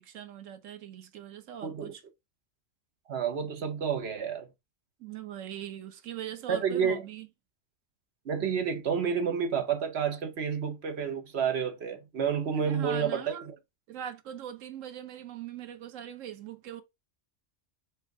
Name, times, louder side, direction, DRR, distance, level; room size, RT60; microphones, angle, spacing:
voice 1, 0.0-2.0 5.0-7.3 12.5-13.5 13.9-16.8, right 10 dB, 85° right, 1.1 m, -41 dB
voice 2, 1.6-1.9 3.1-4.5 6.5-7.0 8.3-13.5, right 7 dB, 60° right, 1.0 m, -30 dB
4.5 x 2.4 x 4.7 m
omnidirectional pair, 1.3 m